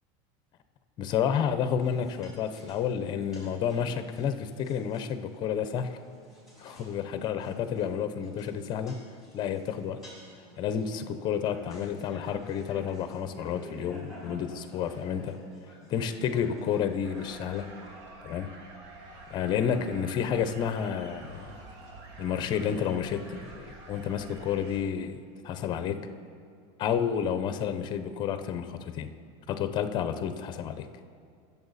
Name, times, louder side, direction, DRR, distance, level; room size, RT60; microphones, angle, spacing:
voice 1, 1.0-6.0 6.6-9.0 9.3-10.0 10.6-15.4 15.9-17.7 18.2-18.5 19.3-21.5 22.2-25.2 25.4-26.0 26.8-29.1 29.5-30.9, left 8 dB, 30° left, 10 dB, 0.6 m, -30 dB
sound 1, 1.8-17.9, equal, ahead, 3.7 m, -51 dB
sound 2, 17.0-24.8, right 2 dB, 75° right, 1.7 m, -48 dB
21.0 x 7.1 x 4.1 m, 2.3 s
cardioid pair, 165°, 14 cm